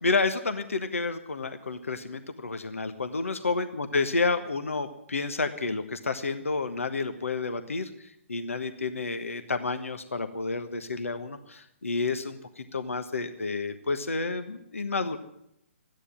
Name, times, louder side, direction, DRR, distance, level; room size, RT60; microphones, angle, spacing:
voice 1, 0.0-15.2, left 3 dB, 80° left, 8 dB, 1.4 m, -30 dB
14.5 x 10.0 x 10.0 m, 0.79 s
figure-of-eight pair, 130°, 7 cm